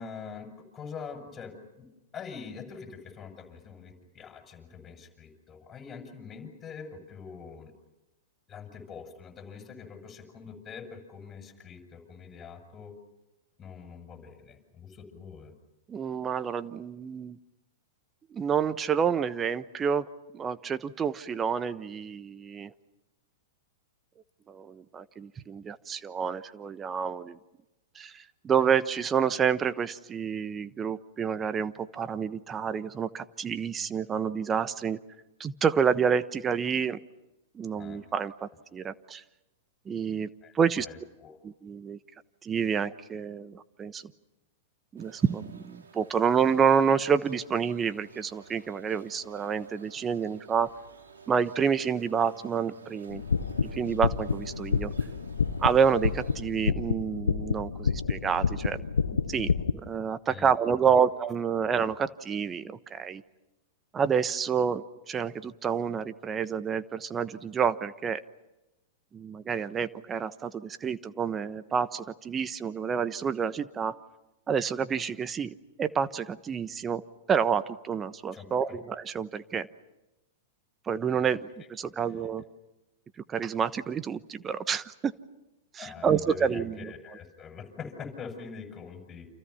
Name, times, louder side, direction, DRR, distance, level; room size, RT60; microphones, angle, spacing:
voice 1, 0.0-7.7 8.5-12.9 13.6-15.5 37.8-38.0 40.4-41.4 60.3-60.5 78.3-78.8 82.0-82.3 85.8-89.3, left 6 dB, 20° left, 4 dB, 7.3 m, -44 dB
voice 2, 15.9-17.4 18.3-20.1 20.3-22.7 24.5-27.4 27.9-35.0 35.4-37.0 37.5-39.2 39.9-40.3 40.5-40.9 41.4-42.0 42.4-44.0 44.9-50.7 51.3-53.2 53.7-54.9 55.6-58.8 59.3-63.2 63.9-68.2 69.1-74.0 74.5-77.0 77.3-79.7 80.9-82.4 83.3-85.1 85.7-86.9, right 7 dB, 20° right, 14 dB, 1.1 m, -28 dB
sound 1, 45.0-56.4, right 4 dB, 75° right, 4.9 m, -52 dB
sound 2, 53.1-59.7, left 5 dB, 80° left, 1.0 m, -29 dB
29.5 x 27.5 x 5.8 m, 0.97 s
hypercardioid pair, 105°, 0 cm